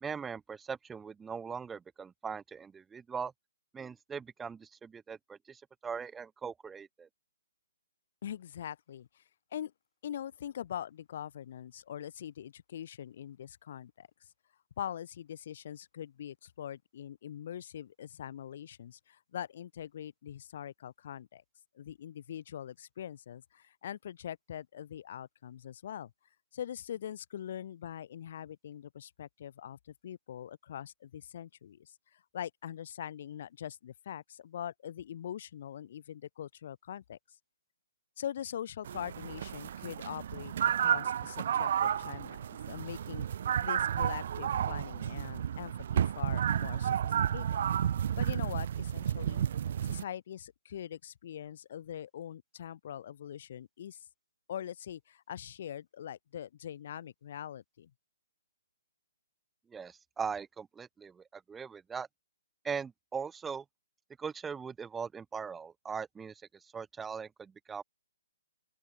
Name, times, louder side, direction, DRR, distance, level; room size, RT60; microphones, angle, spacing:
voice 1, 0.0-3.3 3.7-7.1 59.7-62.1 62.6-63.6 64.2-67.8, right 6 dB, 10° right, 2.3 m, -40 dB
voice 2, 8.2-9.2 9.5-9.7 10.0-14.1 14.8-21.4 21.7-26.1 26.5-37.4 38.2-43.3 43.6-47.6 48.2-49.5 49.8-54.1 54.5-57.9, left 10 dB, 50° left, 2.3 m, -43 dB
sound 1, 38.8-50.0, right 9 dB, 50° right, 0.4 m, -32 dB
open air
figure-of-eight pair, 135°, 0 cm